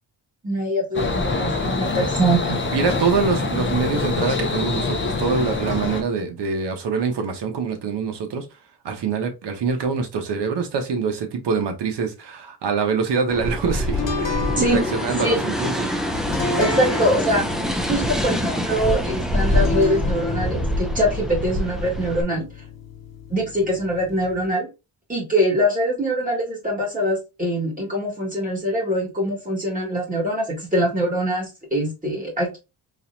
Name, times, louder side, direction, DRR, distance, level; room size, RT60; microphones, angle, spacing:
voice 1, 0.4-2.6 14.6-14.8 15.2-15.4 16.6-17.4 17.9-22.5 23.3-24.7 25.1-32.6, equal, 20° right, 1.9 m, -23 dB
sound 1, 0.9-6.0, left 3 dB, 30° left, 0.9 m, -25 dB
voice 2, 2.7-8.4 8.8-15.9, right 5 dB, 75° right, 1.1 m, -24 dB
sound 2, 13.3-22.2, equal, ahead, 0.5 m, -25 dB
sound 3, 13.8-24.5, left 3 dB, 50° left, 1.6 m, -31 dB
3.9 x 2.9 x 2.6 m
wide cardioid pair, 120°, 42 cm